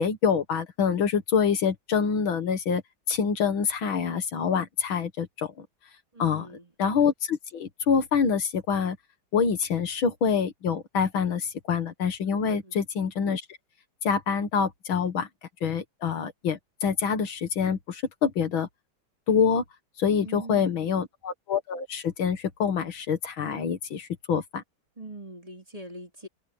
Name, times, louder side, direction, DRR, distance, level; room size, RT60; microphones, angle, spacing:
voice 1, 0.0-2.8 3.1-5.7 6.2-6.5 6.8-9.0 9.3-13.4 14.0-15.3 15.6-18.7 19.3-19.6 20.0-24.6, left 6 dB, 75° left, 2.3 m, -26 dB
voice 2, 6.1-6.7 12.4-12.8 20.2-21.0 25.0-26.3, right 2 dB, 15° right, 3.7 m, -42 dB
open air
omnidirectional pair, 2.2 m